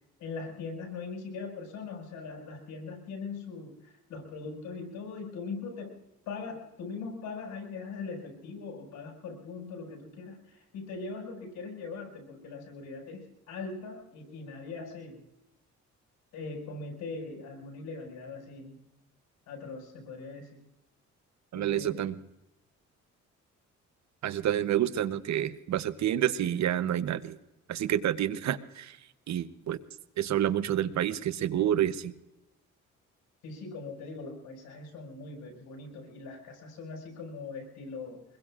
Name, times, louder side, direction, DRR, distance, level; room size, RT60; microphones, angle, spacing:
voice 1, 0.2-6.0 6.3-15.2 16.3-18.8 19.5-20.5 21.5-22.1 33.4-38.2, left 4 dB, 90° left, 0 dB, 5.4 m, -41 dB
voice 2, 21.5-22.2 24.2-27.4 27.7-29.0 29.3-29.8 30.2-32.1, right 11 dB, 65° right, 13 dB, 0.9 m, -28 dB
24.5 x 21.5 x 2.4 m, 0.92 s
cardioid pair, 90°, 30 cm